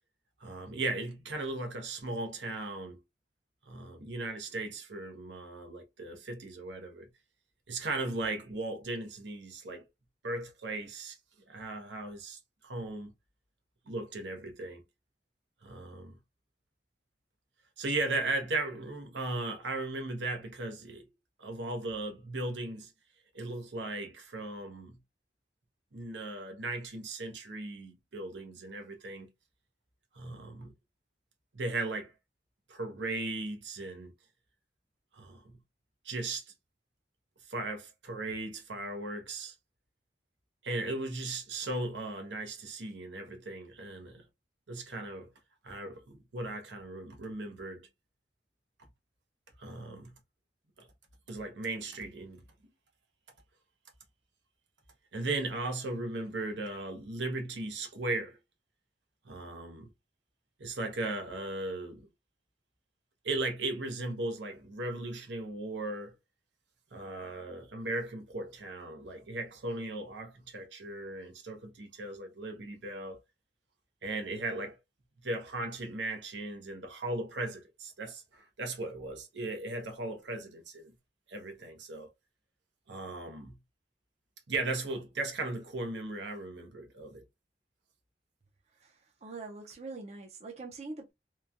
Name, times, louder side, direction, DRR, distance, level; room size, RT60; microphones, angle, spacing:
voice 1, 0.4-3.0 3.7-7.1 7.7-9.9 10.2-11.2 11.5-13.1 13.9-14.8 15.6-16.2 17.8-21.1 21.4-22.9 23.3-25.0 25.9-29.3 30.1-30.7 31.5-32.1 32.7-34.1 35.1-35.6 36.0-36.5 37.5-39.5 40.6-44.3 44.7-45.3 45.6-47.9 49.6-50.1 50.8-50.9 51.3-52.5 55.1-58.4 59.2-59.9 60.6-62.1 63.2-66.1 66.9-73.2 74.0-74.8 75.2-80.9 81.3-82.1 82.9-83.6 84.5-87.3, right 2 dB, 80° right, 0.8 m, -37 dB
voice 2, 88.7-91.1, right 3 dB, 35° right, 0.5 m, -44 dB
3.0 x 2.2 x 2.4 m
head